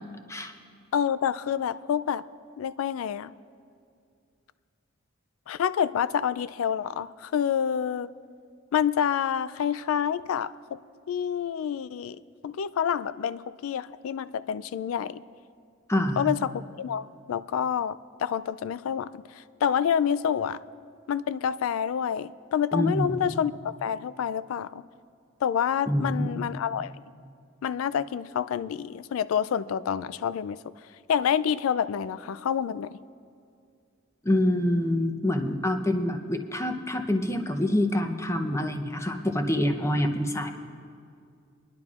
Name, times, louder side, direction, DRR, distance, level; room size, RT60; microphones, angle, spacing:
voice 1, 0.9-2.2 2.6-3.3 5.5-8.1 8.7-10.8 11.1-15.2 16.2-19.2 19.6-20.6 21.1-24.8 25.4-26.9 27.6-30.6 31.1-33.0, left 8 dB, 80° left, 16 dB, 0.3 m, -28 dB
voice 2, 15.9-16.3 22.7-23.2 25.9-26.5 34.2-40.5, left 1 dB, 15° left, 4 dB, 0.6 m, -26 dB
25.5 x 10.5 x 2.4 m, 2.4 s
head